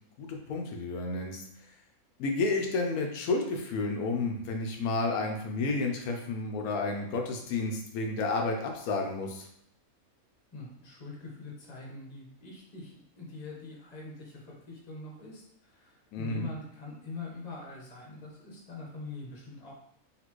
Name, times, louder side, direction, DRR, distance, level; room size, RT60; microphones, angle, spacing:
voice 1, 0.2-1.4 2.2-9.5 16.1-16.5, left 3 dB, 85° left, 2 dB, 1.1 m, -31 dB
voice 2, 10.5-19.7, left 3 dB, 30° left, -2 dB, 1.1 m, -44 dB
4.1 x 3.6 x 3.0 m, 0.70 s
omnidirectional pair, 1.5 m